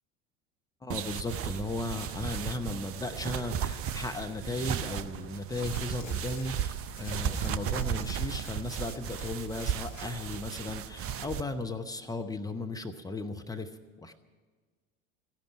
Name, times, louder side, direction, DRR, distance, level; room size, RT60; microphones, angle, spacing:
voice 1, 0.8-14.1, left 2 dB, 10° left, 5 dB, 0.8 m, -36 dB
sound 1, 0.9-11.4, right 8 dB, 35° right, 0.8 m, -35 dB
sound 2, 5.6-6.6 6.9-10.5 11.0-11.1, left 3 dB, 75° left, 1.8 m, -53 dB
15.0 x 10.5 x 8.7 m, 1.4 s
figure-of-eight pair, 70°, 38 cm